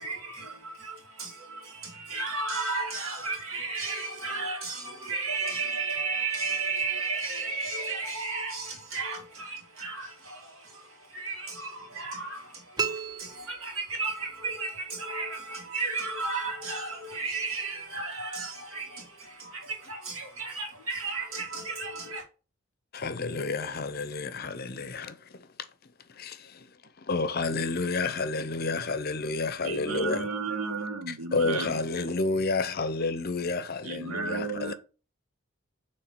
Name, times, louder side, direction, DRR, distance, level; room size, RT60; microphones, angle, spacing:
voice 1, 0.0-22.2, right 3 dB, 70° right, 2.1 m, -34 dB
sound 1, 12.8-14.3, right 5 dB, 20° right, 0.4 m, -34 dB
voice 2, 22.9-25.7 26.1-30.3 31.1-34.7, left 3 dB, 45° left, 0.6 m, -30 dB
voice 3, 29.6-31.7 33.8-34.7, right 4 dB, 90° right, 0.8 m, -33 dB
7.2 x 3.1 x 4.5 m
head